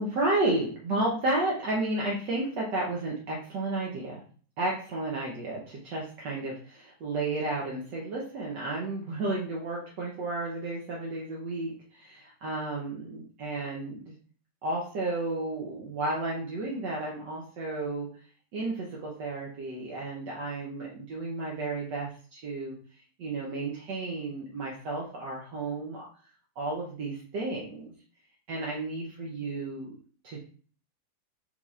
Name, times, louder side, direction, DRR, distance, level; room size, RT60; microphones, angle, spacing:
voice 1, 0.0-4.2 4.6-14.1 14.6-18.1 18.5-22.8 23.2-26.1 26.6-27.9 28.5-30.0 30.2-30.4, right 2 dB, 65° right, -3 dB, 1.4 m, -32 dB
5.6 x 3.2 x 2.4 m, 0.43 s
omnidirectional pair, 2.1 m